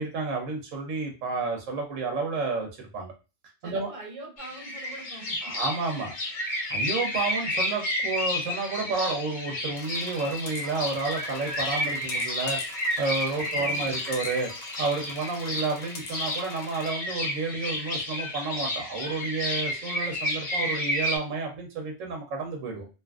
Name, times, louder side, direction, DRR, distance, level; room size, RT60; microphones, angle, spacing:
voice 1, 0.0-3.1 3.6-3.9 5.4-6.1 6.7-12.6 13.0-14.5 14.8-22.9, right 3 dB, 90° right, 2 dB, 1.1 m, -31 dB
voice 2, 3.6-5.5 13.3-14.0, right 2 dB, 35° right, 0 dB, 0.7 m, -44 dB
sound 1, 4.4-21.2, left 1 dB, 45° left, 0.8 m, -31 dB
sound 2, 9.7-16.9, left 3 dB, 90° left, 1.1 m, -44 dB
2.8 x 2.5 x 2.3 m, 0.30 s
omnidirectional pair, 1.3 m